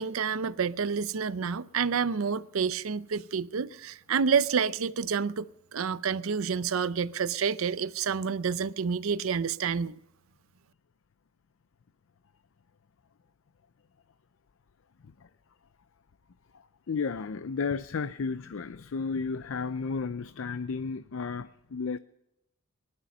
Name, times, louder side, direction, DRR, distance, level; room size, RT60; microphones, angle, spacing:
voice 1, 0.0-5.5 5.7-10.0, right 6 dB, 80° right, 0.5 m, -29 dB
voice 2, 16.5-22.0, left 5 dB, 70° left, 0.5 m, -33 dB
19.5 x 12.0 x 5.4 m
head